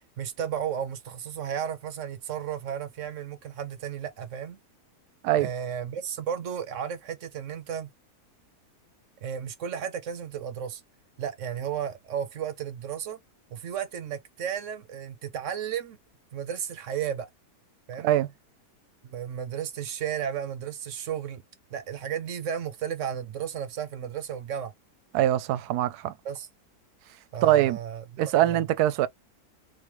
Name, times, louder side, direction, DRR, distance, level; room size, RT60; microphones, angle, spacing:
voice 1, 0.2-4.6 5.4-7.9 9.2-10.8 11.2-13.2 13.5-16.0 16.3-17.3 17.9-18.1 19.0-21.4 21.7-24.7 26.2-26.5 27.3-28.6, right 8 dB, 60° right, 1.0 m, -33 dB
voice 2, 25.1-26.1 27.4-27.8 28.2-29.1, right 13 dB, 80° right, 1.1 m, -23 dB
3.8 x 3.3 x 3.0 m
omnidirectional pair, 1.7 m